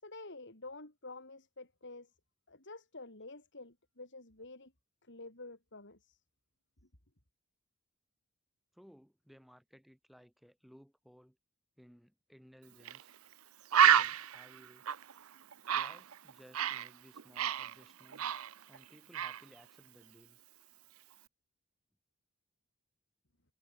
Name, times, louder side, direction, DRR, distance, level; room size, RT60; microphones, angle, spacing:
voice 1, 0.0-2.1 2.5-4.7 5.1-6.2, left 2 dB, 60° left, 5.5 m, -49 dB
voice 2, 8.7-11.4 11.8-13.2 13.7-14.8 15.7-18.3 18.7-20.4, equal, ahead, 7.0 m, -60 dB
Bird, 12.9-13.0 13.3-13.4 13.7-16.9 17.2-18.8 19.1-19.4, right 9 dB, 90° right, 0.7 m, -29 dB
head